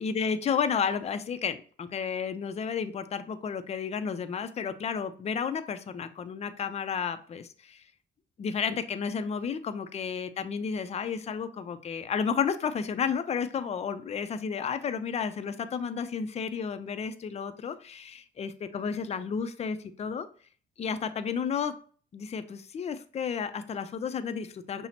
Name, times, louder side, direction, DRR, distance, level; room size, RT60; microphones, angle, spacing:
voice 1, 0.0-7.8 8.4-20.3 20.8-21.7 22.1-24.9, left 6 dB, 35° left, 10 dB, 0.4 m, -32 dB
5.7 x 2.0 x 2.8 m, 0.43 s
cardioid pair, 90°, 20 cm